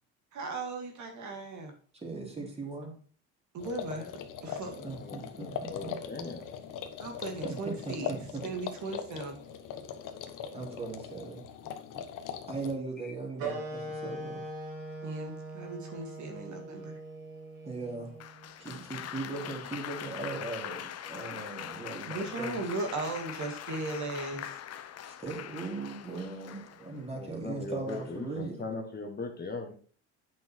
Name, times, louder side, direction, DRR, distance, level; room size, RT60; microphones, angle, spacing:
voice 1, 0.3-1.7 2.4-2.5 3.5-4.1 4.4-4.9 7.0-8.1 8.4-9.4 15.0-17.0 22.1-24.6, right 2 dB, 50° right, 4 dB, 2.1 m, -37 dB
voice 2, 2.0-2.9 4.8-6.0 7.4-8.5 10.5-11.7 12.5-14.5 17.6-18.1 18.6-22.6 25.0-28.6, right 3 dB, 15° right, 0 dB, 3.3 m, -39 dB
sound 1, 3.6-12.7, left 8 dB, 60° left, 1.3 m, -41 dB
voice 3, 4.8-6.7 27.1-29.7, left 3 dB, 25° left, 3 dB, 1.6 m, -39 dB
sound 2, 13.4-18.5, right 2 dB, 75° right, 3.1 m, -41 dB
Applause, 18.2-27.1 27.9-28.3, left 10 dB, 45° left, 0.8 m, -42 dB
8.6 x 6.4 x 4.6 m, 0.43 s
supercardioid pair, 105°, 36 cm